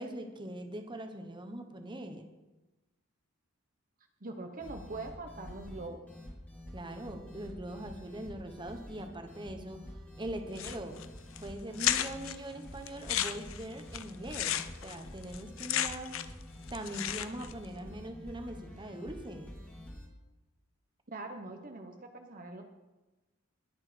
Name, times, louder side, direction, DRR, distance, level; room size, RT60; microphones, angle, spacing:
voice 1, 0.0-2.3 6.7-11.0 11.4-16.2 16.7-19.5 21.5-21.6, right 1 dB, 20° right, 5 dB, 1.2 m, -42 dB
voice 2, 4.2-6.0 21.1-22.6, right 2 dB, 40° right, 4 dB, 1.1 m, -42 dB
sound 1, 4.6-20.1, left 1 dB, 5° left, 2.2 m, -48 dB
sound 2, 10.6-11.0 11.4-11.5 11.8-12.3 12.9-16.4 16.7-17.5, left 11 dB, 70° left, 0.7 m, -33 dB
21.0 x 7.4 x 5.2 m, 1.1 s
head